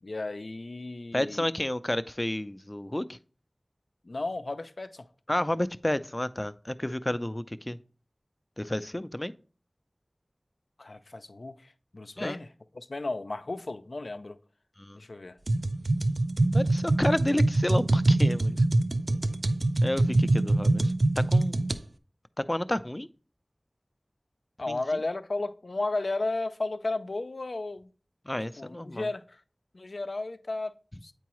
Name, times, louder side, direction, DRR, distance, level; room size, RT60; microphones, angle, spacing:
voice 1, 0.0-1.5 4.0-5.1 10.8-12.5 12.7-14.4 14.9-15.4 24.6-27.9 28.6-29.4 29.7-31.1, left 2 dB, 90° left, 0.4 m, -34 dB
voice 2, 1.1-3.2 5.3-7.8 8.6-9.3 12.2-12.4 14.8-15.0 16.5-18.6 19.8-21.6 22.4-23.1 24.7-24.8 28.3-29.1, left 1 dB, 25° left, 0.4 m, -31 dB
sound 1, 15.5-21.8, right 2 dB, 75° right, 0.4 m, -24 dB
8.3 x 4.6 x 3.0 m
wide cardioid pair, 50°, 0 cm